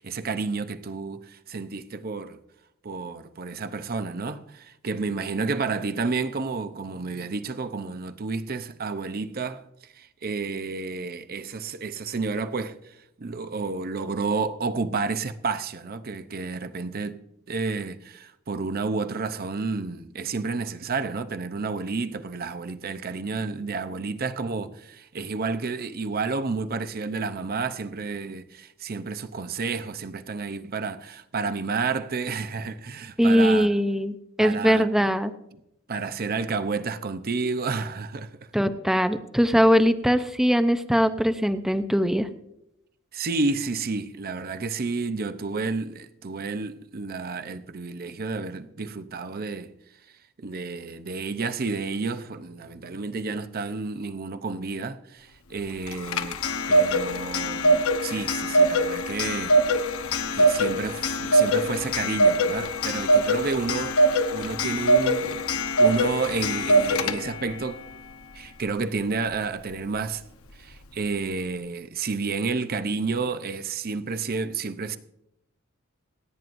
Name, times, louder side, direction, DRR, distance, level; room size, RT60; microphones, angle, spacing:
voice 1, 0.0-2.4 2.8-9.6 9.9-17.2 17.5-33.7 34.4-35.1 35.9-38.3 43.1-49.7 50.4-56.4 56.7-59.8 60.3-65.4 65.8-67.8 68.3-70.2 70.6-75.0, right 4 dB, 45° right, 0.7 m, -30 dB
voice 2, 33.2-35.3 38.5-42.3, equal, ahead, 0.6 m, -21 dB
Clock, 55.9-67.5, right 1 dB, 85° left, 1.0 m, -22 dB
27.5 x 9.4 x 2.6 m
head